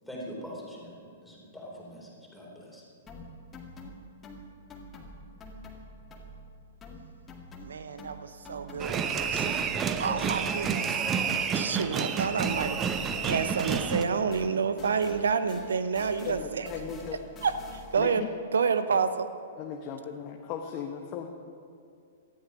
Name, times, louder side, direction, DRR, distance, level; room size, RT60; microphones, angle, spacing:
voice 1, 0.0-2.8, equal, ahead, -4 dB, 4.0 m, -43 dB
sound 1, 3.1-6.5 6.8-14.1 14.3-18.1, left 1 dB, 20° left, 1.9 m, -47 dB
voice 2, 7.6-11.0 11.5-16.7 17.4-18.2 18.5-19.3, right 5 dB, 65° right, 11 dB, 0.8 m, -29 dB
sound 2, 8.8-14.0, right 6 dB, 20° right, 0.8 m, -29 dB
voice 3, 16.2-17.2 18.0-18.3 19.6-21.3, left 7 dB, 35° left, 2 dB, 1.1 m, -37 dB
18.0 x 13.5 x 5.2 m, 2.4 s
figure-of-eight pair, 110°, 0 cm